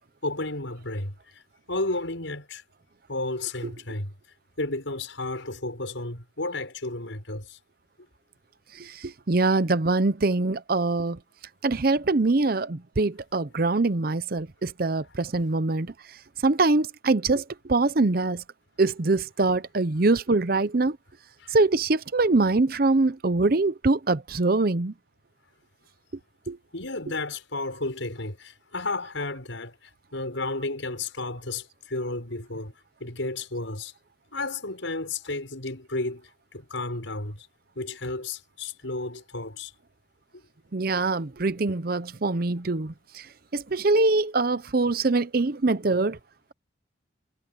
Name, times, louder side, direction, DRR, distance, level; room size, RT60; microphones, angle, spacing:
voice 1, 0.2-1.1 1.7-2.6 3.1-4.1 4.6-7.6 21.4-21.5 26.7-29.8 30.1-32.7 33.0-33.9 34.3-37.5 37.8-39.7, left 2 dB, 80° left, 6.0 m, -32 dB
voice 2, 8.8-11.2 11.6-15.9 16.4-17.4 17.7-18.4 18.8-21.0 21.5-24.9 26.5-26.6 40.7-42.9 43.5-46.2, right 3 dB, 50° right, 0.7 m, -23 dB
head